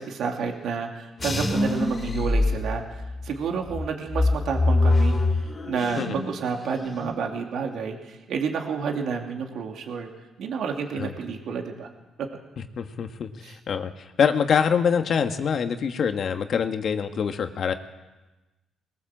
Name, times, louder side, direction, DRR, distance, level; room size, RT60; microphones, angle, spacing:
voice 1, 0.0-10.1 10.4-11.9 12.2-12.4 13.4-13.5, right 5 dB, 70° right, 2 dB, 2.8 m, -30 dB
sound 1, 1.2-3.2 3.7-6.3 6.6-7.2, left 2 dB, 30° left, 3.5 m, -24 dB
voice 2, 12.8-17.7, left 7 dB, 60° left, 6 dB, 1.7 m, -25 dB
21.5 x 19.0 x 7.6 m, 1.1 s
cardioid pair, 90°, 0 cm